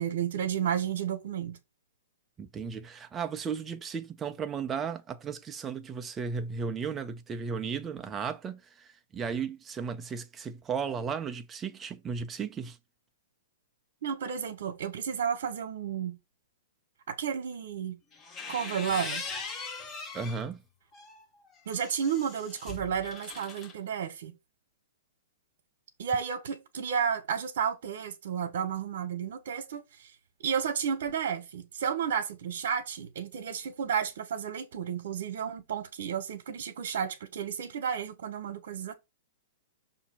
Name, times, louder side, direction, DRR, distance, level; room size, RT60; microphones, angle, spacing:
voice 1, 0.0-1.6 14.0-16.2 17.1-18.0 18.5-19.2 21.7-24.4 26.0-30.1 30.4-38.9, right 7 dB, 65° right, 1.1 m, -32 dB
voice 2, 2.4-12.8 20.1-20.6, right 6 dB, 15° right, 0.6 m, -35 dB
sound 1, 18.1-20.4 20.9-23.7, left 4 dB, 20° left, 0.9 m, -40 dB
6.2 x 2.8 x 5.5 m
hypercardioid pair, 155°, 0 cm